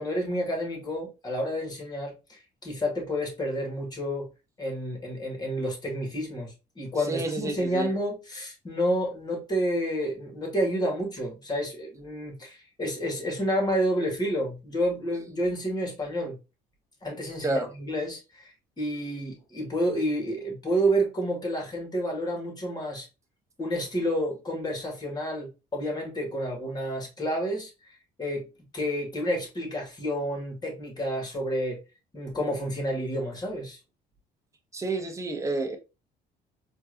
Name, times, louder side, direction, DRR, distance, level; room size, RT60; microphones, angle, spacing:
voice 1, 0.0-4.3 4.6-16.4 17.0-23.1 23.6-27.9 28.2-28.5 28.7-31.8 32.1-33.8, equal, 25° left, 2.1 m, -30 dB
voice 2, 7.1-7.9 17.4-17.7 34.7-35.8, right 2 dB, 20° right, 0.9 m, -29 dB
4.4 x 2.8 x 2.7 m
cardioid pair, 110°, 17 cm